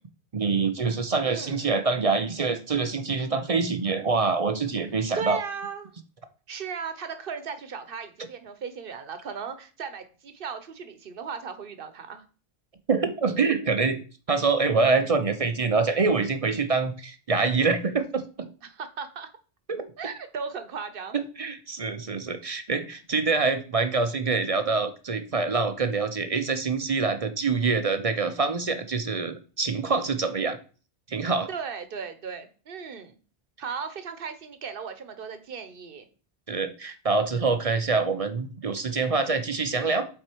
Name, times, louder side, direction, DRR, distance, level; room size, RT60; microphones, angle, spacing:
voice 1, 0.3-5.4 12.9-14.0 14.3-18.2 19.7-19.9 21.4-30.6 31.1-31.5 36.5-40.1, right 4 dB, 40° right, 9 dB, 0.6 m, -25 dB
voice 2, 1.3-1.7 5.1-5.9 6.5-12.2 18.6-19.3 20.0-21.2 31.5-33.1 33.6-36.1, right 6 dB, 60° right, 10 dB, 1.1 m, -36 dB
7.8 x 4.4 x 4.5 m, 0.38 s
omnidirectional pair, 1.1 m